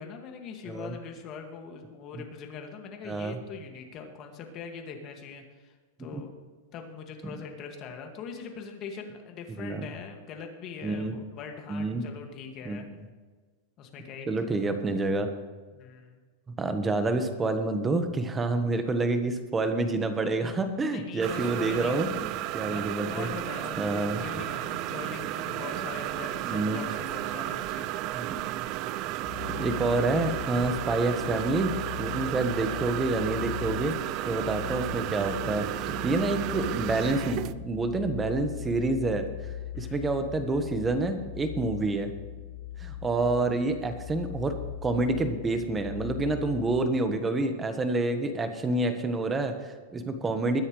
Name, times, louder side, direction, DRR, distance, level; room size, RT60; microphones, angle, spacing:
voice 1, 0.0-6.3 6.7-12.9 13.8-14.3 15.7-16.2 20.9-22.0 22.6-27.9 32.2-32.3 39.7-40.0, left 6 dB, 35° left, 3 dB, 2.1 m, -42 dB
voice 2, 3.0-3.4 6.1-6.2 9.6-9.9 10.8-11.2 11.7-12.0 12.6-12.8 14.3-15.3 16.6-23.3 23.8-24.2 26.4-26.8 29.5-31.7 32.0-33.9 34.2-39.3 39.8-42.1 42.8-44.6 44.8-50.6, right 2 dB, 15° right, 7 dB, 1.3 m, -28 dB
sound 1, 21.2-37.5, right 14 dB, 40° right, 0.4 m, -33 dB
sound 2, 29.2-47.0, left 11 dB, 15° left, 4.6 m, -40 dB
21.5 x 9.8 x 3.3 m, 1.4 s
supercardioid pair, 150°, 0 cm